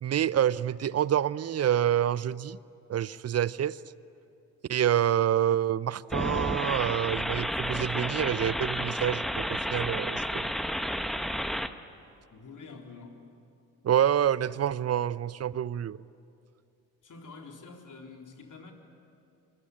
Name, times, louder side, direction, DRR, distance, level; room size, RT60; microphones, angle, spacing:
voice 1, 0.0-2.6 2.9-3.8 4.7-10.5 13.8-16.0, right 10 dB, 35° right, 20 dB, 0.7 m, -27 dB
sound 1, 6.1-11.7, equal, ahead, 1.2 m, -31 dB
voice 2, 11.2-11.8 12.3-13.2 17.0-18.7, left 4 dB, 45° left, 2 dB, 4.0 m, -48 dB
25.5 x 25.0 x 8.8 m, 2.5 s
hypercardioid pair, 45°, 43 cm